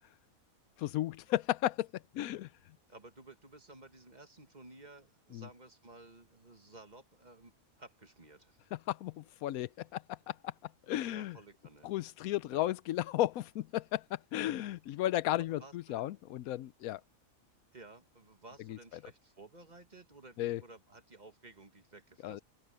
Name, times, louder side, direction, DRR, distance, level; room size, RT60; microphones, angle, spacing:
voice 1, 0.8-2.5 5.3-5.5 8.7-11.4 11.8-17.0 18.7-18.8 20.4-20.6 22.2-22.4, left 14 dB, 85° left, 1.0 m, -34 dB
voice 2, 2.9-7.5 7.8-8.6 11.1-11.9 12.5-12.7 15.4-16.0 17.7-22.4, right 2 dB, 30° right, 1.8 m, -55 dB
open air
omnidirectional pair, 1.5 m